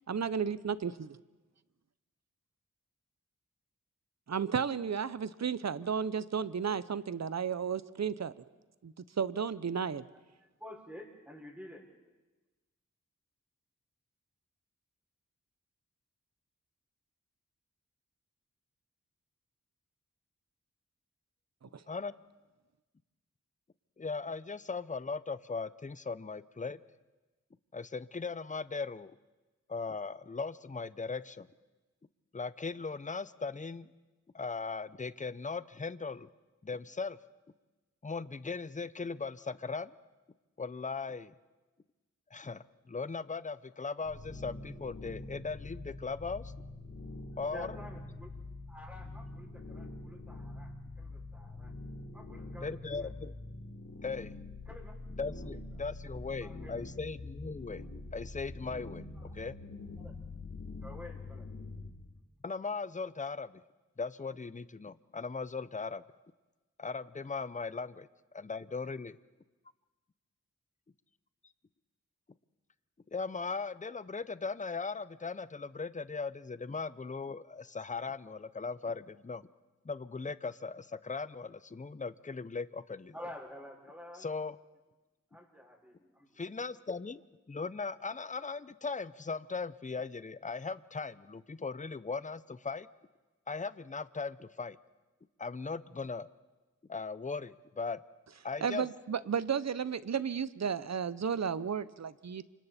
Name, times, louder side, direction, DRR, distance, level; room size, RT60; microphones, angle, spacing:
voice 1, 0.1-1.2 4.3-8.3 8.8-10.0 21.6-21.8 98.6-102.4, right 7 dB, 60° right, 16 dB, 0.8 m, -33 dB
voice 2, 10.1-11.9 47.5-48.3 48.7-51.8 52.1-53.1 54.7-54.9 55.5-55.6 56.4-56.7 59.2-59.3 60.0-60.2 60.8-61.5 83.1-84.3 85.3-86.4, left 1 dB, 5° right, -1 dB, 6.2 m, -50 dB
voice 3, 24.0-26.8 27.7-29.2 29.7-31.5 32.3-33.9 34.3-36.3 36.6-37.2 38.0-39.9 40.6-41.3 42.3-46.5 47.4-47.7 52.6-53.3 54.0-54.3 55.2-57.8 58.1-59.6 62.4-63.6 64.0-66.0 66.8-68.1 68.3-69.2 73.1-79.4 79.8-83.1 84.2-84.6 86.4-87.2 87.5-92.9 93.5-94.8 95.4-96.3 96.9-98.0 98.4-98.8, left 4 dB, 25° left, 15 dB, 0.7 m, -38 dB
sound 1, 44.0-61.9, left 2 dB, 65° left, 3.6 m, -45 dB
28.5 x 25.5 x 4.3 m, 1.2 s
cardioid pair, 50°, 31 cm